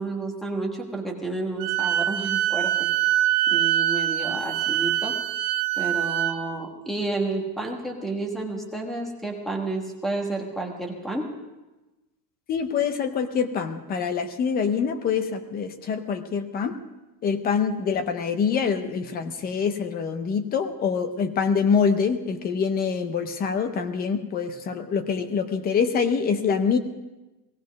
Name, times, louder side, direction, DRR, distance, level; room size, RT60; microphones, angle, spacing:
voice 1, 0.0-2.9 3.5-5.2 5.8-11.3, right 2 dB, ahead, 2 dB, 1.3 m, -31 dB
Wind instrument woodwind instrument, 1.6-6.4, right 12 dB, 45° right, 0.8 m, -24 dB
voice 2, 12.5-16.8 17.2-26.8, left 6 dB, 20° left, 9 dB, 0.6 m, -25 dB
18.0 x 15.5 x 5.2 m, 1.1 s
cardioid pair, 175°, 47 cm